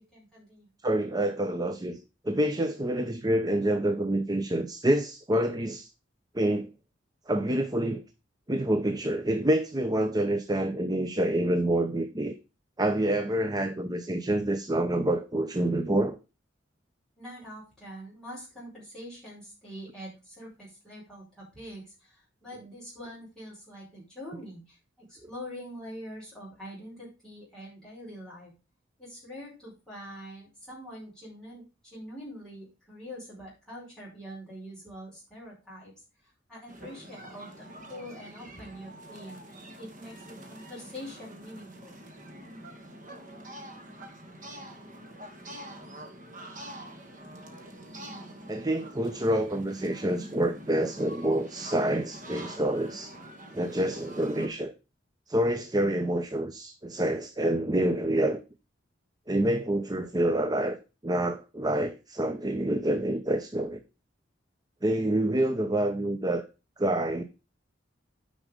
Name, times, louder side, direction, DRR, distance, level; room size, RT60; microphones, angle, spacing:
voice 1, 0.1-0.7 17.2-28.5 29.0-35.9 36.5-42.0, equal, 5° left, 5.1 m, -44 dB
voice 2, 0.8-5.9 6.3-6.7 7.3-8.0 8.5-12.3 12.8-16.2 48.5-53.1 53.5-54.7 55.3-58.4 59.3-60.8 61.0-63.8 64.8-66.4 66.8-67.2, right 1 dB, 20° right, 0.6 m, -27 dB
sound 1, 36.7-54.5, right 1 dB, 45° right, 2.0 m, -46 dB
9.8 x 5.3 x 5.1 m
head